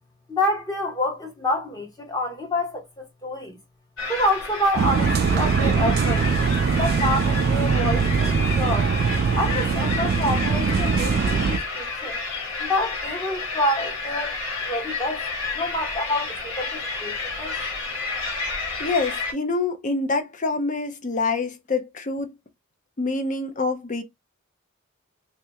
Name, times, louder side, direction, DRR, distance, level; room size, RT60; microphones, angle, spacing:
voice 1, 0.3-3.6 4.1-6.2 6.7-8.9 9.3-12.2 12.6-15.2 15.5-17.5, left 1 dB, 20° left, 0.9 m, -27 dB
sound 1, 4.0-19.3, left 3 dB, 60° left, 1.5 m, -31 dB
Supermarket checkout mixdown dub delay, 4.8-11.6, right 5 dB, 45° right, 0.3 m, -22 dB
voice 2, 18.8-22.3 23.0-24.0, left 3 dB, 35° left, 0.5 m, -26 dB
2.8 x 2.5 x 3.4 m
head